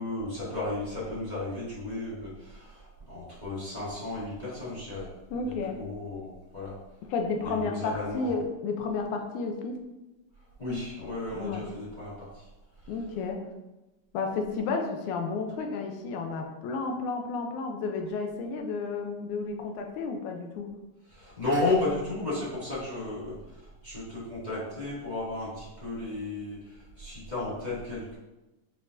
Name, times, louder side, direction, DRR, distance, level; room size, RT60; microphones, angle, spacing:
voice 1, 0.0-5.1 5.4-6.7 7.4-8.3 10.6-12.5 12.8-12.9 21.1-23.4 23.8-28.2, left 2 dB, 15° left, -10 dB, 1.6 m, -33 dB
voice 2, 5.3-5.8 7.0-9.8 11.3-11.6 12.9-13.5 14.1-20.7, left 4 dB, 75° left, 3 dB, 1.9 m, -32 dB
7.0 x 5.2 x 2.6 m, 1.0 s
omnidirectional pair, 3.9 m